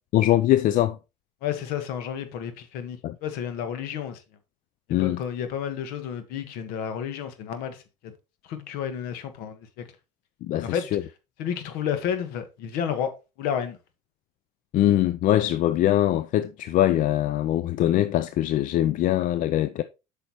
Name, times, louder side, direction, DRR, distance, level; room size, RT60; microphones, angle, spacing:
voice 1, 0.1-1.0 3.0-3.2 4.9-5.2 10.4-11.0 14.7-19.8, left 13 dB, 55° left, 0.5 m, -22 dB
voice 2, 1.4-4.2 5.0-8.1 8.4-9.8 10.6-10.9 11.4-13.1 13.4-13.8, left 8 dB, 70° left, 1.4 m, -31 dB
8.1 x 5.7 x 3.0 m
supercardioid pair, 80°, 16 cm